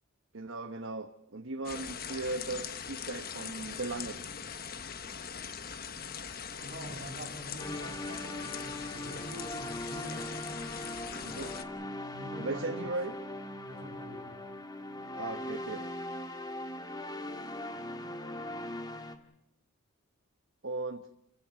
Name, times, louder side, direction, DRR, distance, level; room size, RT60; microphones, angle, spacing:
voice 1, 0.3-4.2 11.2-11.6 12.4-13.1 15.1-15.9 20.6-21.1, right 2 dB, 65° right, 6 dB, 1.3 m, -37 dB
sound 1, 1.6-11.6, left 7 dB, 45° left, 1.3 m, -41 dB
voice 2, 6.6-10.3 12.1-12.9 13.7-14.3, right 1 dB, 45° right, 2 dB, 7.1 m, -45 dB
sound 2, 7.6-19.2, left 1 dB, 20° left, 1.8 m, -40 dB
29.5 x 16.0 x 7.7 m, 0.86 s
head